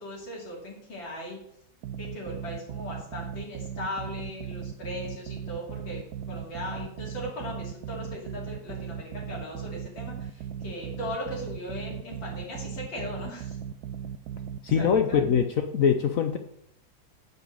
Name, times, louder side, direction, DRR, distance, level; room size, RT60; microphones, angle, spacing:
voice 1, 0.0-1.4 2.0-13.6 14.8-15.2, left 1 dB, 85° left, -4 dB, 3.6 m, -38 dB
sound 1, 1.8-15.5, right 8 dB, 70° right, 0.9 m, -38 dB
voice 2, 14.6-16.4, left 7 dB, 65° left, 7 dB, 0.8 m, -23 dB
9.0 x 5.4 x 6.5 m, 0.73 s
omnidirectional pair, 2.0 m